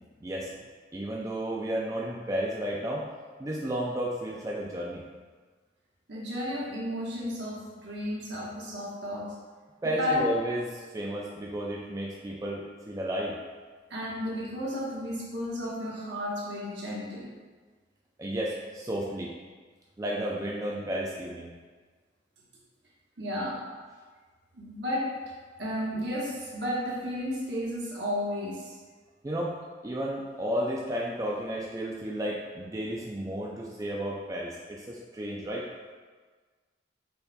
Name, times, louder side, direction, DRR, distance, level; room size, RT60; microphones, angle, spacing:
voice 1, 0.2-0.5 0.9-3.1 3.4-5.0 9.8-13.4 18.2-19.3 20.0-21.5 29.2-35.7, right 1 dB, 20° right, -3 dB, 0.4 m, -32 dB
voice 2, 6.1-9.3 10.0-10.3 13.9-17.3 23.2-23.6 24.5-25.3 25.6-28.7, left 1 dB, 65° right, -5 dB, 1.2 m, -33 dB
5.5 x 4.2 x 2.2 m, 1.4 s
head